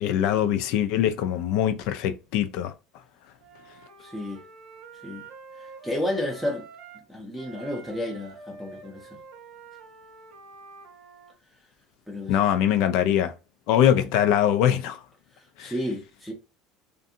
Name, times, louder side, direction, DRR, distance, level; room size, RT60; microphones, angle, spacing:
voice 1, 0.0-2.7 12.3-13.3 13.7-15.0 15.6-15.7, left 10 dB, 65° left, 0.4 m, -22 dB
Wind instrument woodwind instrument, 3.4-7.1 7.3-11.3, right 4 dB, 85° right, 1.0 m, -47 dB
voice 2, 4.0-4.4 5.0-5.2 5.6-6.6 7.1-9.2 12.1-12.4 13.9-14.1 15.6-16.3, left 1 dB, ahead, 0.6 m, -32 dB
2.6 x 2.5 x 2.6 m
cardioid pair, 150°, 0 cm